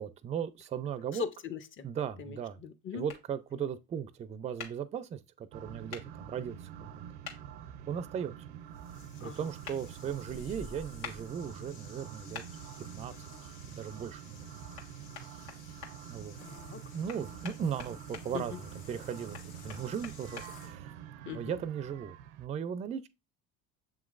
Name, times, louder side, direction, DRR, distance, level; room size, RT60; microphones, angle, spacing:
voice 1, 0.0-1.2 1.8-2.6 2.9-7.0 7.9-8.3 9.2-12.4 12.9-13.1 13.6-14.7 16.1-16.4 16.9-20.9 21.3-23.1, right 8 dB, 20° right, 0.3 m, -37 dB
voice 2, 1.1-1.9 2.2-3.0 9.2-9.4 16.4-16.8 18.3-18.5 21.3-21.6, left 7 dB, 35° left, 0.7 m, -40 dB
sound 1, 3.1-3.2 4.6-4.7 5.9-6.0 7.2-7.4 9.6-9.8 11.0-11.2 12.3-12.5 14.8-14.9 15.1-15.9 17.1-18.3 19.3-20.5, left 7 dB, 80° left, 1.4 m, -43 dB
sound 2, 5.5-22.5, right 9 dB, 90° right, 0.5 m, -47 dB
sound 3, 8.7-20.8, left 4 dB, 65° left, 0.9 m, -53 dB
7.2 x 3.0 x 2.4 m
supercardioid pair, 90°, 34 cm